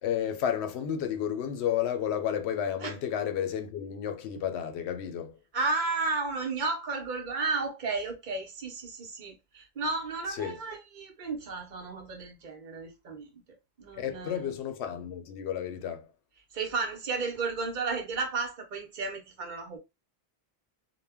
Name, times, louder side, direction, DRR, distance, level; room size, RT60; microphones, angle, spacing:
voice 1, 0.0-5.3 10.4-10.6 14.0-16.1, left 9 dB, 85° left, 0.8 m, -32 dB
voice 2, 5.5-13.4 13.8-14.6 16.5-19.8, right 3 dB, 50° right, 0.8 m, -33 dB
2.2 x 2.1 x 3.4 m
omnidirectional pair, 1.1 m